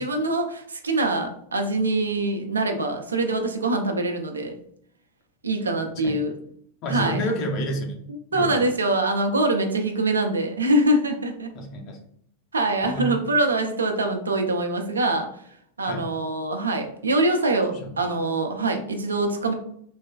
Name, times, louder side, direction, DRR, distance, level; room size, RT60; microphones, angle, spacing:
voice 1, 0.0-4.6 5.4-6.3 6.9-7.2 8.1-11.5 12.5-15.3 15.8-19.5, right 2 dB, 75° right, 4 dB, 0.4 m, -24 dB
voice 2, 6.8-8.0 8.3-8.7 11.5-12.0 12.8-13.1 15.8-16.1 17.7-17.9, equal, 40° left, 1 dB, 0.6 m, -29 dB
3.2 x 2.2 x 2.2 m, 0.66 s
figure-of-eight pair, 90°, 0 cm